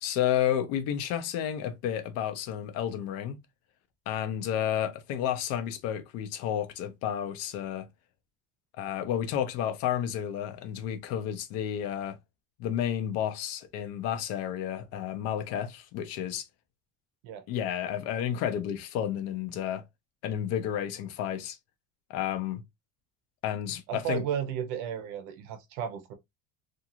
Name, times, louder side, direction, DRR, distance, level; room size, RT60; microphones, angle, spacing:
voice 1, 0.0-3.4 4.1-7.9 8.8-12.2 12.6-16.4 17.5-19.8 20.2-21.6 22.1-22.6 23.4-24.2, left 10 dB, 45° left, 0.5 m, -31 dB
voice 2, 23.9-26.1, right 9 dB, 50° right, 0.7 m, -33 dB
2.5 x 2.4 x 2.8 m
cardioid pair, 170°, 36 cm